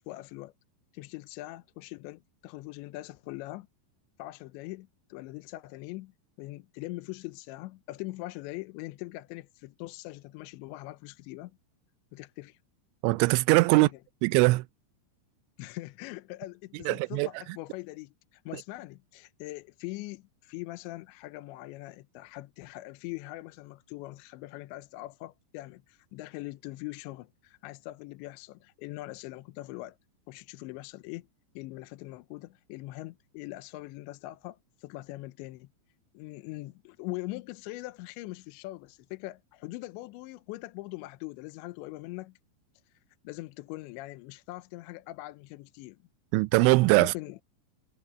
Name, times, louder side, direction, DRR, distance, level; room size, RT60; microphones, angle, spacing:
voice 1, 0.1-0.5 0.9-3.7 4.2-11.5 12.1-12.6 13.7-14.0 15.6-30.0 30.3-31.3 31.6-35.7 36.1-42.4 43.2-46.0 47.0-47.4, left 19 dB, 85° left, 3.0 m, -42 dB
voice 2, 13.0-13.9 14.2-14.6 16.9-17.3 46.3-47.1, right 24 dB, 90° right, 2.9 m, -21 dB
omnidirectional pair, 5.2 m